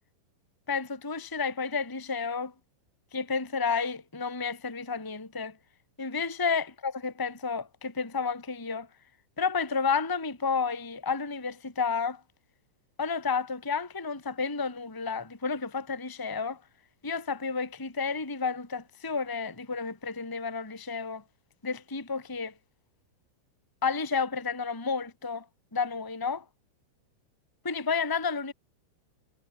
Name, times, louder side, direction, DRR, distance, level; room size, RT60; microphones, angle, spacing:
voice 1, 0.7-2.5 3.1-5.5 6.0-8.9 9.4-12.2 13.0-16.6 17.0-21.2 21.6-22.5 23.8-25.4 25.7-26.4 27.6-28.5, left 5 dB, 30° left, 0.4 m, -31 dB
omnidirectional pair, 5.9 m